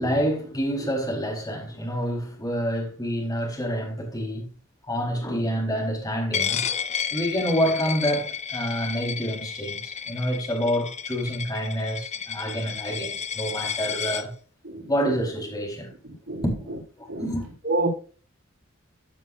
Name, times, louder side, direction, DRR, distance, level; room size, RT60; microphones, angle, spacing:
voice 1, 0.0-4.5 4.8-6.6 7.1-14.3 14.9-15.9 16.4-17.5, equal, 20° left, 4.2 m, -27 dB
Coin (dropping), 6.3-14.2, left 7 dB, 35° left, 0.7 m, -32 dB
voice 2, 14.6-15.2 16.0-16.4 17.1-17.3 17.6-17.9, right 2 dB, 85° right, 4.5 m, -29 dB
15.0 x 7.5 x 2.6 m
head